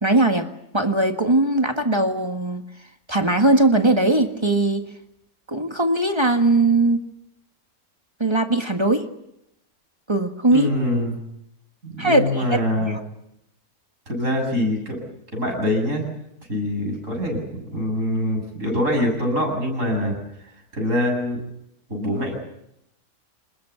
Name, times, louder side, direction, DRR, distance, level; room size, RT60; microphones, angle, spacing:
voice 1, 0.0-2.6 3.1-4.8 5.5-7.1 8.2-9.0 10.1-10.7 12.0-12.4 12.8-13.0, right 2 dB, 20° right, 5 dB, 1.7 m, -20 dB
voice 2, 10.5-11.2 11.8-13.0 14.1-15.0 15.3-16.0 16.5-20.2 20.7-21.4 21.9-22.4, left 1 dB, 55° right, 2 dB, 8.1 m, -24 dB
27.5 x 20.5 x 8.3 m, 0.81 s
omnidirectional pair, 1.6 m